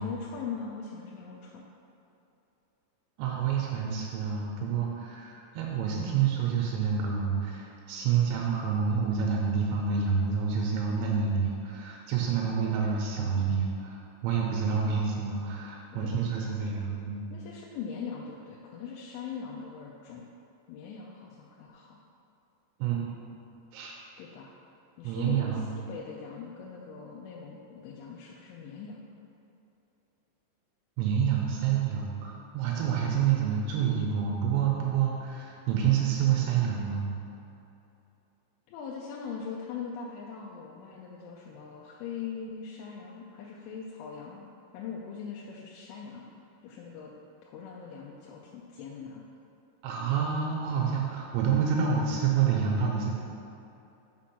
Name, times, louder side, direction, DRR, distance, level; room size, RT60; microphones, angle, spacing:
voice 1, 0.0-1.7 12.4-13.4 15.9-16.1 16.7-16.8 17.3-20.2 20.7-22.0 24.2-24.5 25.0-29.0 38.7-44.5 44.7-46.2 46.6-47.1 47.4-49.2, left 6 dB, 90° left, -3 dB, 3.2 m, -41 dB
voice 2, 3.2-17.3 22.8-23.1 23.7-24.0 25.0-25.8 31.0-37.0 49.8-53.1, right 7 dB, 80° right, -2 dB, 3.0 m, -28 dB
6.1 x 6.0 x 5.9 m, 2.8 s
omnidirectional pair, 5.5 m